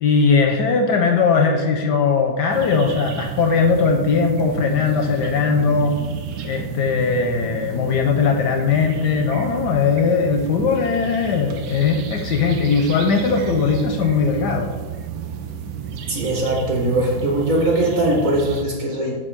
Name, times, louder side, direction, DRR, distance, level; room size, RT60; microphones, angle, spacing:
voice 1, 0.0-6.0 6.4-14.7, left 5 dB, 75° left, 4 dB, 1.0 m, -19 dB
sound 1, 2.5-18.6, right 7 dB, 85° right, 0.8 m, -32 dB
voice 2, 16.1-19.1, right 1 dB, 45° right, -2 dB, 1.3 m, -20 dB
7.1 x 2.6 x 5.2 m, 1.4 s
omnidirectional pair, 2.2 m